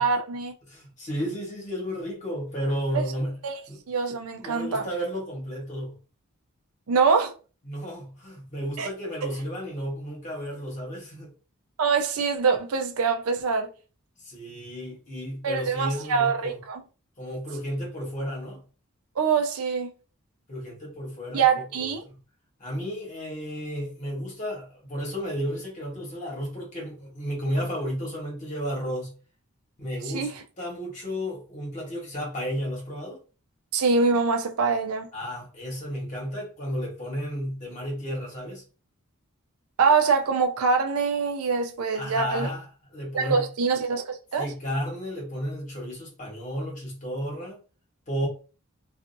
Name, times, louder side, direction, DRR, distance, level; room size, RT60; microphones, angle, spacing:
voice 1, 0.0-0.5 2.9-3.0 3.4-3.6 3.9-4.9 6.9-7.3 8.8-8.9 11.8-13.7 15.4-16.8 19.2-19.9 21.3-22.0 30.1-30.3 33.7-35.1 39.8-42.5 43.1-44.5, right 5 dB, 75° right, 0.5 m, -24 dB
voice 2, 0.7-3.4 3.7-3.8 4.4-6.0 7.6-11.3 14.2-16.6 17.2-18.6 20.5-22.1 22.6-29.1 29.8-30.3 30.6-33.2 35.1-38.6 41.9-43.5 44.4-47.6 48.1-48.3, equal, 35° left, 1.2 m, -33 dB
2.5 x 2.4 x 2.6 m
head